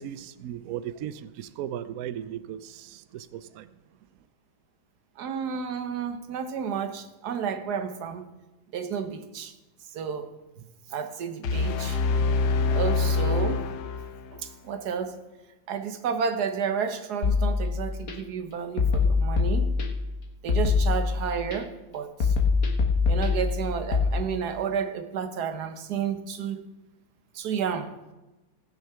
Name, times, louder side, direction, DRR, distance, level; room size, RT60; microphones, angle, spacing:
voice 1, 0.0-3.7, right 10 dB, 80° right, 14 dB, 0.8 m, -37 dB
voice 2, 5.2-8.3 8.7-9.5 9.8-10.3 10.9-12.0 12.7-13.7 14.3-15.2 15.7-19.7 20.4-22.4 23.1-26.6 27.3-28.0, right 7 dB, 60° right, 8 dB, 1.4 m, -31 dB
sound 1, 11.4-14.5, left 4 dB, 65° left, 1.2 m, -25 dB
sound 2, 17.2-18.1 18.8-20.1 20.5-21.6 22.2-24.1, left 4 dB, 50° left, 1.7 m, -24 dB
18.0 x 6.3 x 5.7 m, 1.1 s
omnidirectional pair, 2.1 m